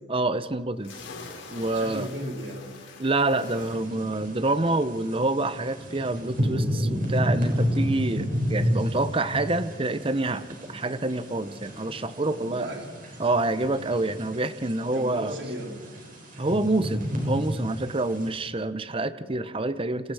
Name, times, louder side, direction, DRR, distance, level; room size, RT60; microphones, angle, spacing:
voice 1, 0.1-1.0 1.5-2.1 3.0-10.4 10.7-12.7 13.2-15.4 16.4-20.1, right 2 dB, 30° right, 13 dB, 0.8 m, -27 dB
sound 1, 0.8-14.1, left 3 dB, 75° left, 5.0 m, -50 dB
voice 2, 1.7-2.7 12.4-12.9 14.9-15.8, equal, 70° right, 1 dB, 3.8 m, -35 dB
sound 2, 3.4-18.3, equal, 45° right, 6.2 m, -31 dB
29.5 x 26.0 x 4.9 m, 1.5 s
head